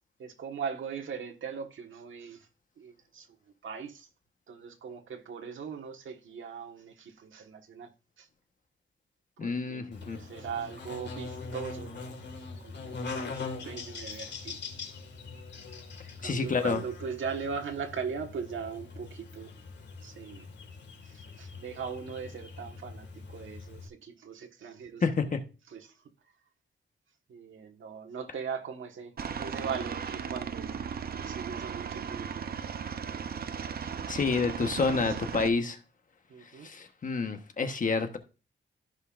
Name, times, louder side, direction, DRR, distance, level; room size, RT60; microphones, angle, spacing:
voice 1, 0.2-2.5 2.8-3.3 3.6-4.1 4.5-7.9 8.2-8.3 9.4-12.0 12.6-13.0 13.6-14.6 16.2-19.5 20.0-20.5 21.0-25.3 25.7-25.9 27.3-29.1 29.4-30.7 31.2-32.5 33.8-33.9 34.4-35.2 36.3-36.7, right 6 dB, 75° right, 1.5 m, -39 dB
voice 2, 9.4-10.2 16.2-16.8 25.0-25.4 34.1-35.8 36.6-38.2, left 4 dB, 40° left, 1.2 m, -29 dB
Buzz, 9.9-23.9, left 4 dB, 60° left, 1.9 m, -42 dB
Aircraft, 29.2-35.5, right 7 dB, 50° right, 0.6 m, -36 dB
15.0 x 5.5 x 2.5 m
wide cardioid pair, 140°, 20 cm